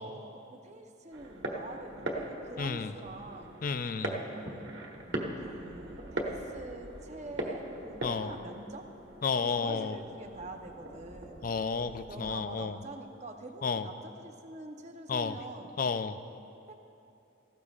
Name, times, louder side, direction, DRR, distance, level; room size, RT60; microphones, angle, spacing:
voice 1, 0.0-3.6 4.2-4.8 5.4-8.9 9.5-11.5 12.0-15.8 16.7-16.8, right 2 dB, 35° right, 4 dB, 0.8 m, -45 dB
sound 1, 1.1-12.4, right 1 dB, 65° right, 1.4 m, -40 dB
voice 2, 2.6-2.9 3.6-4.2 8.0-8.3 9.2-10.0 11.4-12.8 13.6-13.9 15.1-15.4 15.8-16.2, left 5 dB, 45° left, 11 dB, 0.4 m, -32 dB
18.5 x 16.0 x 2.4 m, 2.8 s
head